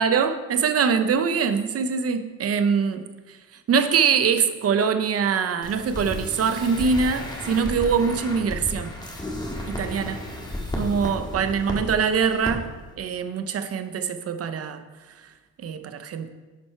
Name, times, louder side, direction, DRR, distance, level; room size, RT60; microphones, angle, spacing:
voice 1, 0.0-3.4 3.7-8.9 9.7-10.2 10.8-12.7 13.0-14.8 15.6-16.3, right 6 dB, 50° right, 9 dB, 0.7 m, -23 dB
sound 1, 5.6-11.9 12.3-12.5 12.8-12.9, left 1 dB, 15° left, 1.5 m, -33 dB
10.5 x 4.3 x 4.4 m, 1.3 s
cardioid pair, 90°, 30 cm